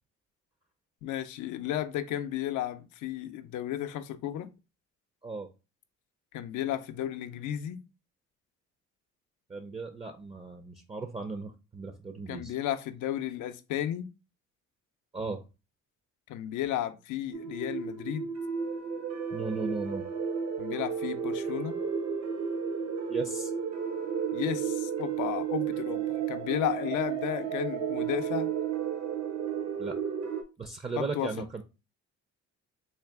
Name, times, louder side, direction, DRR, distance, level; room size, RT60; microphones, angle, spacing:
voice 1, 1.0-4.5 6.3-7.8 12.3-14.1 16.3-18.3 20.6-21.8 24.3-28.5 31.0-31.3, left 12 dB, 85° left, 0.5 m, -33 dB
voice 2, 9.5-12.5 15.1-15.4 19.3-20.1 23.1-23.5 29.8-30.0 30.6-31.6, right 3 dB, 20° right, 0.5 m, -36 dB
sound 1, 17.3-30.4, right 7 dB, 65° right, 0.8 m, -33 dB
3.8 x 2.4 x 3.4 m
cardioid pair, 90°, 30 cm